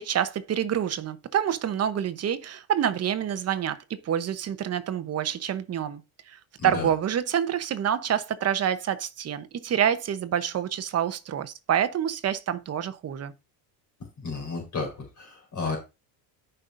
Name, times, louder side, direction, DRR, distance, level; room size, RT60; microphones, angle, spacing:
voice 1, 0.0-6.0 6.3-13.3, right 9 dB, 35° right, 0.9 m, -27 dB
voice 2, 6.6-6.9 14.2-15.8, left 4 dB, 40° left, 4.1 m, -32 dB
14.0 x 5.6 x 2.6 m
cardioid pair, 130°, 45 cm